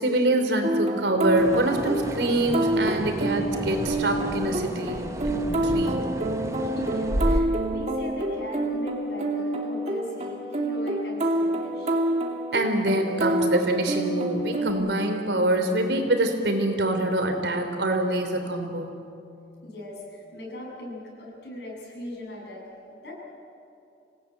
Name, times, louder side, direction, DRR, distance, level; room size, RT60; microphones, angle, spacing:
voice 1, 0.0-6.0 12.5-19.0, right 1 dB, 80° right, 5 dB, 3.3 m, -25 dB
sound 1, 0.6-14.7, right 1 dB, 40° right, 2.7 m, -28 dB
sound 2, 1.4-7.4, equal, 15° right, 1.0 m, -32 dB
voice 2, 6.6-12.0 19.6-23.1, left 1 dB, 75° left, -2 dB, 7.7 m, -39 dB
26.5 x 17.5 x 9.2 m, 2.6 s
head